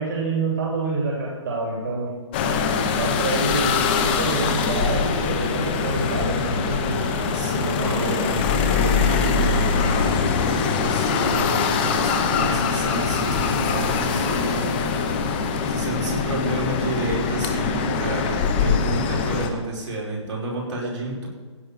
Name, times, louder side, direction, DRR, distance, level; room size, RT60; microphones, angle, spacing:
voice 1, 0.0-2.1 3.0-7.1 7.6-8.3 9.9-10.1, right 3 dB, 45° right, -3 dB, 3.3 m, -27 dB
sound 1, 2.3-19.5, left 5 dB, 20° left, 1.0 m, -23 dB
voice 2, 7.0-14.8 15.7-21.3, right 2 dB, 70° right, -3 dB, 5.2 m, -31 dB
15.5 x 5.6 x 9.2 m, 1.4 s
hypercardioid pair, 170°, 16 cm